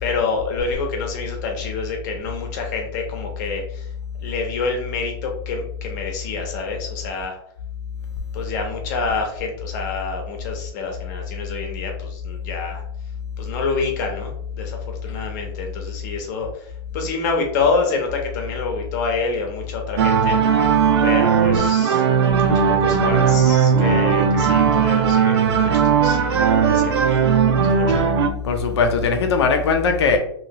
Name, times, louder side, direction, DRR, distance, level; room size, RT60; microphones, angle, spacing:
voice 1, 0.0-3.9 4.2-7.4 8.3-12.8 13.4-20.4 21.0-22.0 22.4-27.2 27.7-28.1, left 4 dB, 40° left, 0.8 m, -27 dB
sound 1, 20.0-28.3, right 7 dB, 70° right, 0.6 m, -17 dB
voice 2, 28.4-30.2, left 4 dB, 75° left, 0.6 m, -19 dB
2.9 x 2.8 x 2.8 m
hypercardioid pair, 160°, 14 cm